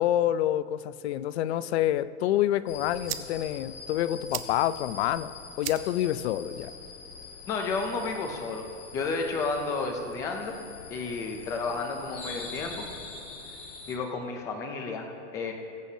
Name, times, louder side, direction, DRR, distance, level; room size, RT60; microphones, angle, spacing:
voice 1, 0.0-5.3 5.6-6.7, left 12 dB, 65° left, 15 dB, 0.5 m, -27 dB
sound 1, 2.4-8.4, right 14 dB, 40° right, 0.6 m, -43 dB
sound 2, 2.7-14.0, left 4 dB, 85° left, 2.2 m, -44 dB
voice 2, 7.5-8.7 8.9-10.6 10.9-12.8 13.9-15.5, left 4 dB, 10° left, 3 dB, 0.3 m, -32 dB
21.0 x 8.1 x 2.7 m, 2.5 s
supercardioid pair, 160°, 36 cm